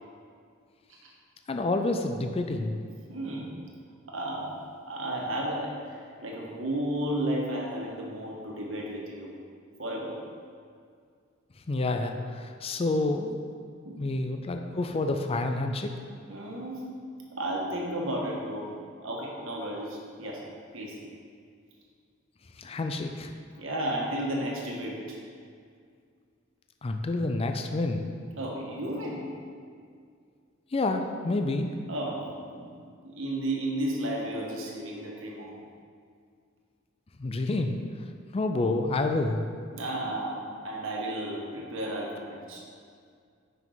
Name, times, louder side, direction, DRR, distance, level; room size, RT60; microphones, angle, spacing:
voice 1, 1.5-2.8 11.7-13.4 14.0-15.9 22.6-23.3 26.8-28.1 30.7-31.7 37.2-37.7 38.3-39.4, left 2 dB, 30° left, 5 dB, 0.4 m, -28 dB
voice 2, 3.1-3.6 4.1-9.3 9.8-10.2 13.8-14.1 16.3-16.9 17.3-18.7 19.0-20.4 20.7-21.0 23.6-25.2 28.4-29.3 31.9-32.7 33.0-35.6 39.7-42.6, right 1 dB, 70° right, -2 dB, 1.5 m, -33 dB
9.4 x 5.7 x 4.0 m, 2.2 s
head